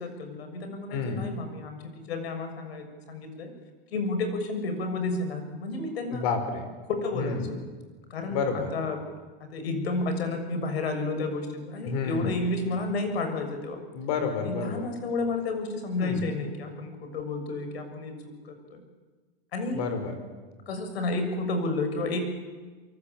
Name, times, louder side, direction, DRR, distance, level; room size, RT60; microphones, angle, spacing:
voice 1, 0.0-3.5 3.9-6.2 6.9-7.6 8.1-9.0 9.5-13.8 14.4-18.2 18.4-18.8 19.5-19.9 20.7-22.2, left 3 dB, 80° left, 7 dB, 6.8 m, -31 dB
voice 2, 0.9-1.3 6.1-6.7 7.1-7.5 8.3-8.7 11.8-12.4 13.9-14.9 16.0-16.3 19.7-20.1, left 5 dB, 40° left, 7 dB, 5.0 m, -30 dB
26.0 x 23.5 x 8.6 m, 1.3 s
supercardioid pair, 175°, 30 cm